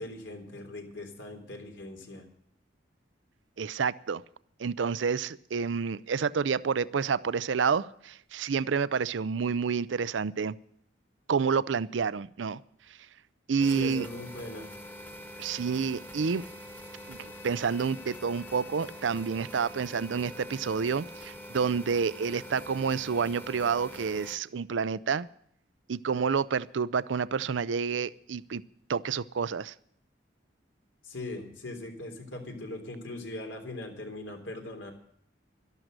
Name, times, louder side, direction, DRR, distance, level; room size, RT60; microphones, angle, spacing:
voice 1, 0.0-2.3 13.7-14.7 31.0-34.9, left 2 dB, 80° left, 3 dB, 3.5 m, -40 dB
voice 2, 3.6-4.2 4.6-10.6 11.3-12.6 13.5-14.1 15.4-16.4 17.1-25.3 25.9-28.6 28.9-29.7, right 5 dB, 80° right, 18 dB, 0.5 m, -29 dB
sound 1, 13.6-24.4, equal, 10° left, 1.3 m, -45 dB
12.5 x 12.0 x 6.6 m, 0.66 s
head